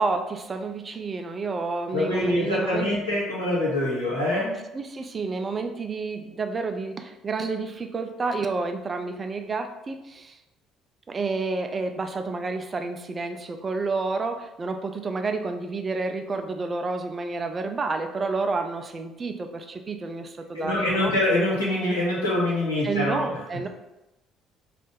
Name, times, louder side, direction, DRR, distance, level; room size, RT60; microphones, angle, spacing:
voice 1, 0.0-2.9 4.7-10.4 11.1-21.1 22.8-23.7, right 3 dB, 35° right, 6 dB, 0.3 m, -30 dB
voice 2, 1.9-4.6 20.5-23.4, left 1 dB, 90° left, -7 dB, 1.0 m, -25 dB
2.5 x 2.4 x 3.7 m, 0.96 s
figure-of-eight pair, 55°, 0 cm